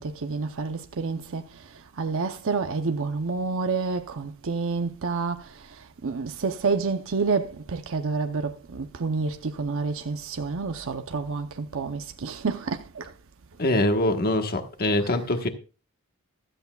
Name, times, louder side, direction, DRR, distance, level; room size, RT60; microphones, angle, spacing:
voice 1, 0.0-13.1 15.0-15.3, right 4 dB, 65° right, 0.7 m, -29 dB
voice 2, 13.6-15.5, left 1 dB, 45° left, 1.3 m, -23 dB
15.0 x 13.0 x 2.3 m
head